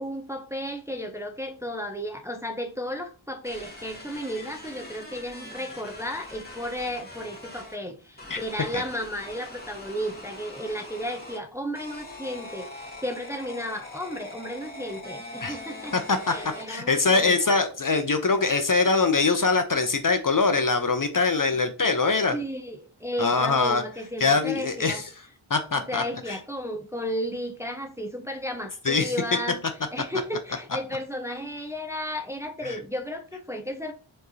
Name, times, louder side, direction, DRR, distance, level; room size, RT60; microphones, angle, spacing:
voice 1, 0.0-16.0 16.3-17.5 22.3-25.0 25.9-29.6 29.9-33.9, equal, 5° right, 0.6 m, -33 dB
sound 1, 3.4-7.7 8.2-11.4 11.7-16.9, left 2 dB, 20° left, 1.8 m, -42 dB
voice 2, 15.9-16.3 16.7-22.3 23.2-23.8 24.2-25.0 25.5-26.4 28.8-29.1 32.6-32.8, left 4 dB, 40° left, 0.6 m, -23 dB
4.4 x 3.1 x 2.7 m
wide cardioid pair, 45°, 49 cm